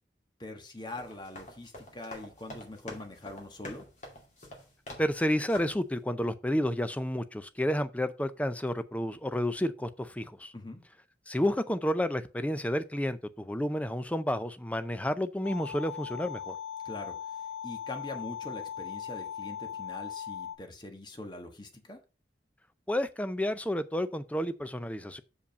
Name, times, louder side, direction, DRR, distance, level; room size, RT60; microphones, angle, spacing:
voice 1, 0.4-3.8 10.5-10.8 16.8-17.2 17.6-22.0, left 2 dB, 25° left, 1.3 m, -43 dB
sound 1, 0.8-5.2 5.5-5.9, left 1 dB, 40° left, 2.5 m, -47 dB
voice 2, 5.0-10.5 11.3-16.6 22.9-25.2, equal, 10° left, 0.5 m, -30 dB
sound 2, 15.4-20.6, left 8 dB, 85° left, 1.0 m, -39 dB
6.9 x 5.1 x 5.2 m
head